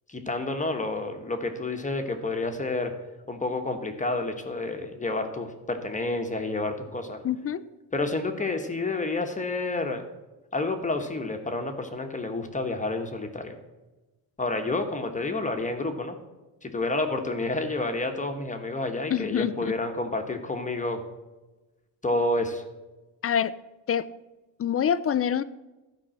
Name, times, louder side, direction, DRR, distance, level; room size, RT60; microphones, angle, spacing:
voice 1, 0.1-2.9 3.3-7.2 7.9-10.0 10.5-13.6 14.4-16.1 16.6-21.0 22.0-22.6, left 2 dB, 20° left, 5 dB, 1.2 m, -29 dB
voice 2, 7.2-7.7 19.1-19.7 23.2-23.5 23.9-24.1 24.6-25.4, left 8 dB, 35° left, 15 dB, 0.5 m, -26 dB
13.0 x 5.5 x 7.5 m, 1.1 s
cardioid pair, 135°, 41 cm